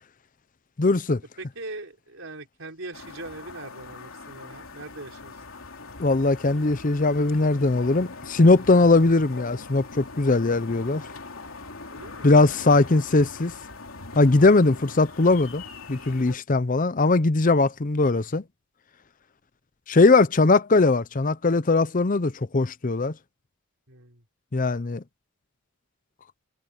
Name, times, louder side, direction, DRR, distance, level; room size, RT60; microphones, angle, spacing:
voice 1, 0.8-1.2 6.0-11.0 12.2-13.5 14.2-15.6 15.9-18.4 19.9-23.1 24.5-25.0, left 3 dB, 40° left, 0.7 m, -20 dB
voice 2, 1.4-5.4 11.9-12.7 23.9-24.2, right 2 dB, 65° right, 4.8 m, -41 dB
sound 1, 2.9-16.4, left 3 dB, 80° left, 3.1 m, -42 dB
head